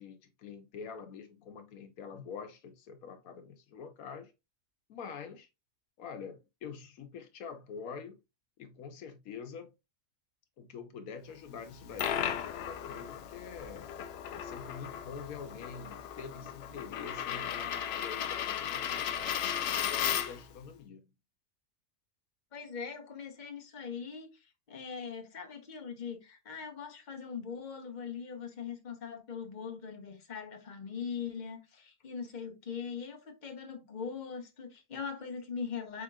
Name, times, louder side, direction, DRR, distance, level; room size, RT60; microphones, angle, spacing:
voice 1, 0.0-4.3 4.9-5.5 6.0-8.2 8.6-9.7 10.6-13.9 14.3-21.1, left 6 dB, 90° left, 1.2 m, -46 dB
Coin (dropping), 11.6-20.5, left 9 dB, 65° left, 0.7 m, -36 dB
voice 2, 22.5-36.0, left 6 dB, 35° left, 1.0 m, -41 dB
4.9 x 4.3 x 2.3 m
omnidirectional pair, 1.4 m